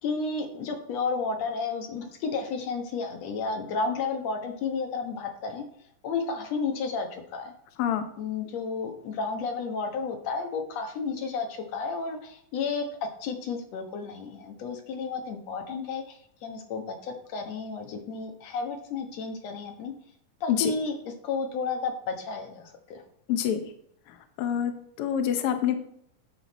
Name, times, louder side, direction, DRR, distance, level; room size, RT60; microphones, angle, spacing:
voice 1, 0.0-5.6 6.0-7.5 8.2-12.9 13.2-19.9 20.4-23.0, left 4 dB, 60° left, 4 dB, 2.3 m, -32 dB
voice 2, 23.3-23.6 24.4-25.7, left 9 dB, 80° left, 7 dB, 1.2 m, -26 dB
9.5 x 6.6 x 4.1 m, 0.68 s
omnidirectional pair, 3.7 m